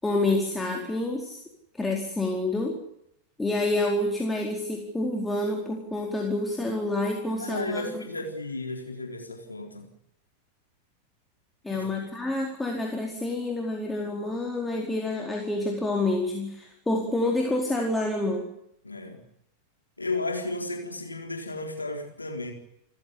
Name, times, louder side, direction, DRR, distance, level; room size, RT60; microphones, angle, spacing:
voice 1, 0.0-1.4 1.7-2.8 3.4-8.0 11.6-18.4, left 2 dB, 10° left, 0 dB, 4.5 m, -28 dB
voice 2, 7.4-9.9 11.7-11.9 18.8-19.2 20.0-22.5, left 2 dB, 80° left, 3 dB, 3.9 m, -33 dB
29.0 x 15.5 x 8.4 m, 0.77 s
figure-of-eight pair, 90°, 0 cm